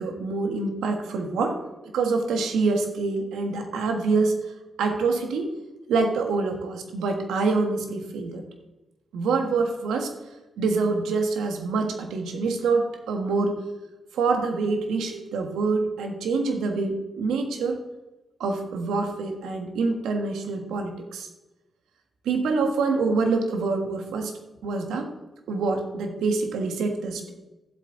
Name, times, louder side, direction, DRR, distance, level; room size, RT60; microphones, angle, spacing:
voice 1, 0.0-1.6 1.9-4.3 4.8-5.5 5.9-8.4 9.1-10.1 10.6-13.5 14.1-17.8 18.4-21.3 22.2-24.3 24.6-25.0 25.5-27.3, right 4 dB, 85° right, 4 dB, 1.6 m, -26 dB
12.5 x 8.0 x 4.0 m, 1.0 s
supercardioid pair, 50°, 0 cm